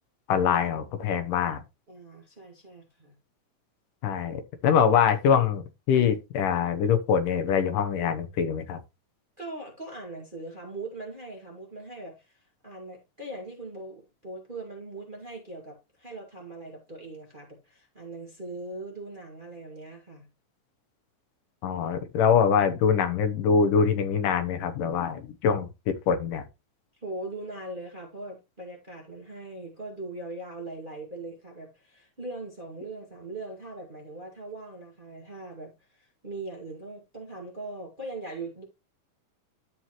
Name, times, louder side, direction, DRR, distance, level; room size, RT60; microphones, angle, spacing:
voice 1, 0.3-1.6 4.0-8.8 21.6-26.4, left 7 dB, 75° left, 2.6 m, -24 dB
voice 2, 1.9-3.2 9.4-20.3 27.0-38.6, right 2 dB, 20° right, 1.8 m, -40 dB
13.5 x 5.0 x 3.1 m
omnidirectional pair, 4.0 m